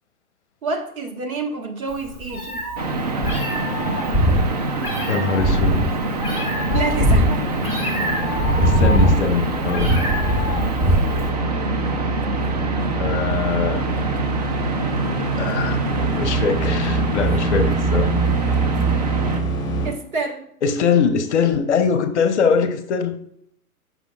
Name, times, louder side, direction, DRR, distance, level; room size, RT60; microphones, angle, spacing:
voice 1, 0.6-2.6 6.7-7.4 17.6-17.7 19.8-20.4, right 3 dB, 65° right, 3 dB, 1.4 m, -28 dB
Meow, 1.9-11.3, equal, 5° right, 1.2 m, -21 dB
sound 1, 2.8-19.4, right 2 dB, 30° right, 0.4 m, -26 dB
voice 2, 5.1-5.8 8.5-10.0 13.0-13.9 15.4-18.1 20.6-23.2, left 6 dB, 50° left, 8 dB, 0.7 m, -22 dB
sound 2, 6.9-19.9, right 3 dB, 10° left, 1.3 m, -25 dB
8.0 x 6.0 x 2.3 m, 0.71 s
figure-of-eight pair, 120°, 45 cm